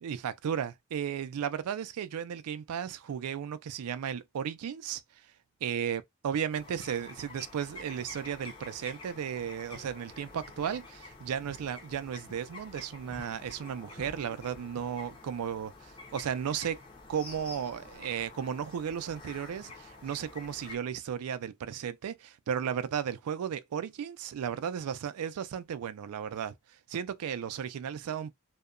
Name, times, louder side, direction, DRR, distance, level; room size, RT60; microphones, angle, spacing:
voice 1, 0.0-5.0 5.6-16.8 17.1-26.5 26.9-28.3, right 8 dB, 85° right, 0.4 m, -35 dB
sound 1, 6.5-20.8, left 3 dB, 20° left, 0.7 m, -48 dB
2.7 x 2.1 x 2.4 m
head